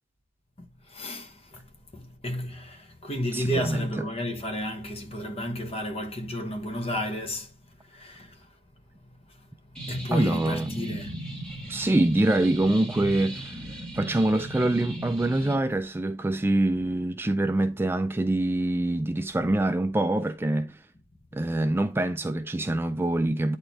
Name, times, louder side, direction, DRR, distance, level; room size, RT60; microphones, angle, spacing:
voice 1, 0.9-1.7 1.9-7.5 7.9-8.5 9.3-9.5 9.9-11.2, equal, 30° left, 1.2 m, -32 dB
voice 2, 3.3-3.9 10.1-10.8 11.7-20.8 21.3-23.6, right 1 dB, 10° right, 0.3 m, -25 dB
sound 1, 9.7-15.5, right 1 dB, 5° left, 2.1 m, -38 dB
8.8 x 4.4 x 3.3 m
head